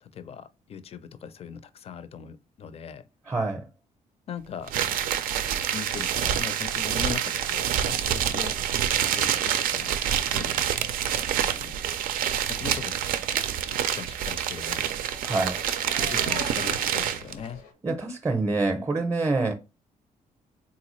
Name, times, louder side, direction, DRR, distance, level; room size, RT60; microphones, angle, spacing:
voice 1, 0.0-3.1 4.3-4.7 5.7-10.7 11.4-11.8 12.5-13.0 13.7-14.9 16.0-17.6, left 7 dB, 45° left, 0.4 m, -40 dB
voice 2, 3.3-3.6 15.2-15.6 17.8-19.5, right 3 dB, 20° right, 0.5 m, -26 dB
sound 1, 4.7-17.3, right 9 dB, 85° right, 0.4 m, -27 dB
sound 2, 6.3-9.5 9.8-11.8 12.1-12.3 12.7-13.0 14.5-17.7, left 4 dB, 90° left, 0.8 m, -46 dB
3.9 x 2.3 x 3.0 m
cardioid pair, 105°, 14 cm